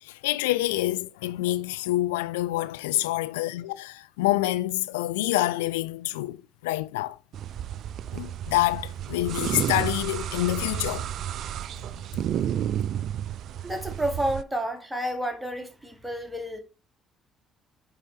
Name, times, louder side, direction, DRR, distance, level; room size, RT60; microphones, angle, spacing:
voice 1, 0.0-6.4 6.6-7.2 8.1-11.1 11.9-12.0, left 16 dB, 80° left, 0.4 m, -27 dB
sound 1, 7.3-14.4, right 10 dB, 60° right, 0.3 m, -31 dB
voice 2, 13.6-16.6, right 1 dB, 10° right, 1.8 m, -30 dB
8.9 x 3.5 x 4.1 m
hypercardioid pair, 50°, 0 cm